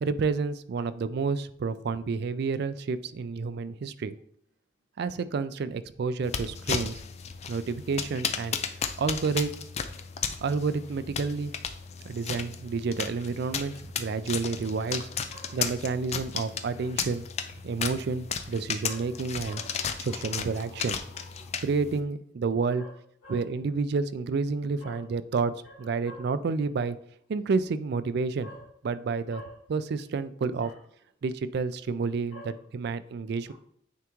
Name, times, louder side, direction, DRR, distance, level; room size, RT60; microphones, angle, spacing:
voice 1, 0.0-4.2 5.0-7.0 7.5-8.6 9.0-9.5 10.4-11.5 12.0-15.1 15.5-17.2 17.6-19.6 20.0-21.0 21.6-22.9 23.3-27.0 27.3-28.5 28.8-29.4 29.7-30.7 31.2-33.5, right 4 dB, 55° right, 13 dB, 0.3 m, -30 dB
sound 1, 6.2-22.0, left 7 dB, 35° left, 0.4 m, -35 dB
voice 2, 19.4-21.5 22.8-22.9 23.2-23.4 24.8-25.0 26.0-26.2 28.4-28.6 29.3-29.5 30.6-30.7 32.3-32.5 33.5-33.6, equal, 60° left, -11 dB, 2.4 m, -47 dB
9.2 x 3.5 x 3.0 m, 0.67 s
head